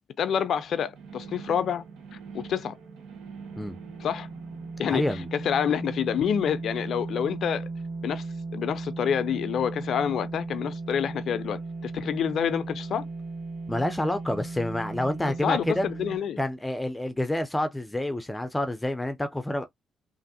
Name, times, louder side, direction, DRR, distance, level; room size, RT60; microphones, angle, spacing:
voice 1, 0.2-1.8 2.3-2.8 4.0-4.3 4.8-7.7 8.0-8.2 8.5-13.0 15.2-16.4, left 8 dB, 70° left, 0.4 m, -28 dB
sound 1, 0.6-16.2, right 3 dB, 80° right, 0.8 m, -37 dB
voice 2, 4.9-5.3 13.7-15.9 16.4-19.7, left 1 dB, 15° left, 0.5 m, -28 dB
3.3 x 2.5 x 2.7 m
supercardioid pair, 50°, 0 cm